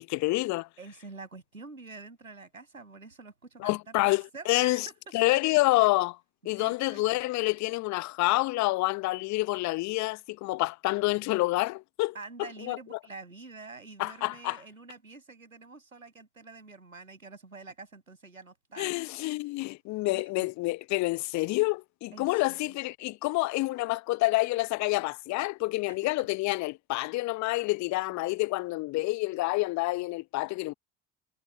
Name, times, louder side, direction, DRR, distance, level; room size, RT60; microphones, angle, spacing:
voice 1, 0.0-0.7 3.6-4.9 5.1-6.2 6.4-12.1 12.4-13.0 14.0-14.6 18.8-30.7, left 20 dB, 45° left, 0.8 m, -28 dB
voice 2, 0.8-4.9 6.5-7.0 12.1-18.9 20.1-20.5 22.1-22.7 26.2-26.3, right 3 dB, 85° right, 6.5 m, -47 dB
figure-of-eight pair, 65°, 40 cm